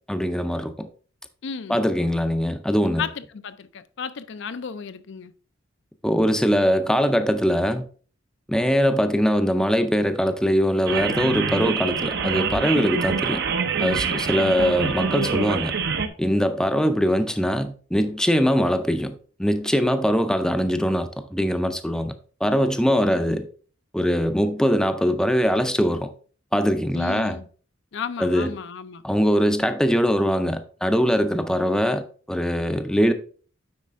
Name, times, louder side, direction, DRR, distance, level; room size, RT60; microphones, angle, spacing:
voice 1, 0.1-0.9 1.7-3.1 6.0-7.9 8.5-13.4 13.8-15.7 16.2-22.1 22.4-23.5 23.9-26.1 26.5-27.4 28.2-28.5 29.0-33.1, equal, 5° left, 0.5 m, -22 dB
voice 2, 1.4-1.8 3.0-5.3 26.9-27.5 27.9-29.0, left 6 dB, 65° left, 0.5 m, -33 dB
sound 1, 10.9-16.1, right 5 dB, 60° right, 0.7 m, -25 dB
9.6 x 4.2 x 3.5 m
head